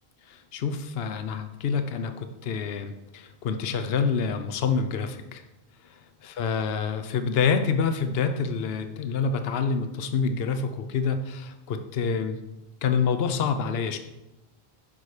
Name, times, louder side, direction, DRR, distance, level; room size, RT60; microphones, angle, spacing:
voice 1, 0.3-5.4 5.8-12.4 12.8-14.0, left 5 dB, 70° left, 8 dB, 0.9 m, -27 dB
11.0 x 5.6 x 4.8 m, 0.98 s
omnidirectional pair, 1.1 m